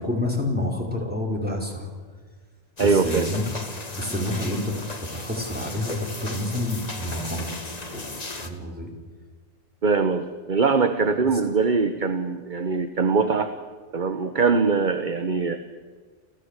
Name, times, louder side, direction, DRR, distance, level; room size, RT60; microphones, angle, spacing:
voice 1, 0.0-1.9 2.8-3.4 3.9-7.6 7.9-8.9, left 1 dB, 10° right, 0 dB, 4.7 m, -29 dB
sound 1, 2.8-8.5, left 2 dB, 35° left, 1.7 m, -36 dB
voice 2, 2.8-3.3 9.8-13.5 13.9-15.8, right 4 dB, 45° right, 9 dB, 1.2 m, -22 dB
28.5 x 15.5 x 8.3 m, 1.5 s
omnidirectional pair, 1.2 m